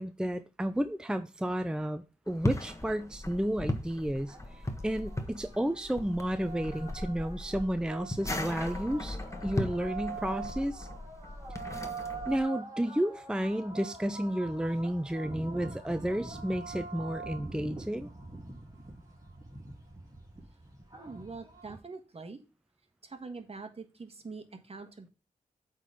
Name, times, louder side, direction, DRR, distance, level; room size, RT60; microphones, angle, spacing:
voice 1, 0.0-10.9 12.3-18.1, right 1 dB, 5° right, 0.5 m, -32 dB
sound 1, 2.3-12.4, left 1 dB, 20° left, 1.4 m, -38 dB
sound 2, 4.2-21.8, right 3 dB, 25° right, 3.3 m, -44 dB
voice 2, 20.9-22.4 23.0-25.1, right 4 dB, 45° right, 1.5 m, -44 dB
8.2 x 3.9 x 5.5 m
cardioid pair, 60°, 14 cm